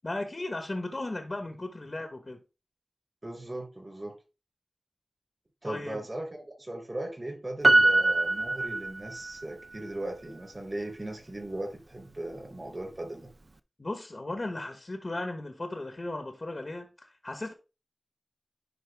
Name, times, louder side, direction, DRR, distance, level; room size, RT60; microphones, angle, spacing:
voice 1, 0.0-2.4 5.6-6.0 13.8-17.5, left 2 dB, 50° left, 1.1 m, -36 dB
voice 2, 3.2-4.1 5.6-13.3, right 1 dB, 40° right, 4.9 m, -38 dB
Piano, 7.6-9.4 9.7-9.8, right 2 dB, 60° right, 0.6 m, -23 dB
10.5 x 4.4 x 3.4 m
wide cardioid pair, 50°, 0 cm